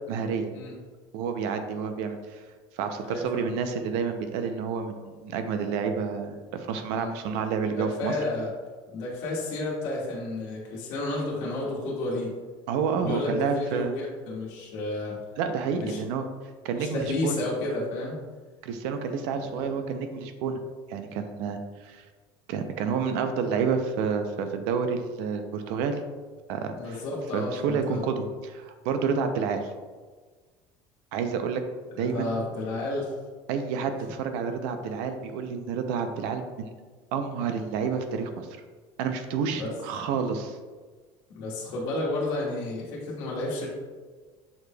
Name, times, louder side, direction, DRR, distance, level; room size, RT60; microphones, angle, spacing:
voice 1, 0.1-0.5 1.1-2.4 2.8-8.1 12.7-13.9 15.4-16.2 16.6-17.4 18.6-20.6 20.9-22.0 22.5-26.0 26.5-27.0 27.3-29.7 31.1-31.6 32.0-32.3 33.5-36.7 37.1-38.5 39.0-40.6, right 6 dB, 70° right, 7 dB, 0.5 m, -29 dB
voice 2, 3.0-3.5 6.9-7.1 7.7-8.5 8.9-12.3 13.0-15.2 15.8-16.0 16.7-18.2 19.3-19.7 26.7-28.0 31.9-33.1 39.5-39.7 41.3-43.7, left 2 dB, 60° left, -5 dB, 1.4 m, -31 dB
7.1 x 3.2 x 2.2 m, 1.4 s
cardioid pair, 170°, 11 cm